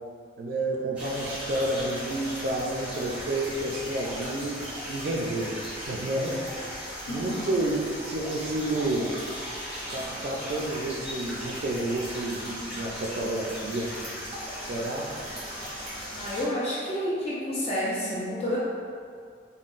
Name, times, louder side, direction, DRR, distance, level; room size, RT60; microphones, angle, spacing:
voice 1, 0.4-4.6 4.9-5.6 5.9-6.4 7.1-9.1 9.9-13.9 14.7-15.1, right 1 dB, 55° right, -2 dB, 0.3 m, -30 dB
sound 1, 1.0-16.4, equal, 5° right, 0.7 m, -37 dB
voice 2, 7.1-7.4 16.2-18.6, equal, 35° left, -8 dB, 0.4 m, -29 dB
3.6 x 2.1 x 2.4 m, 2.2 s
head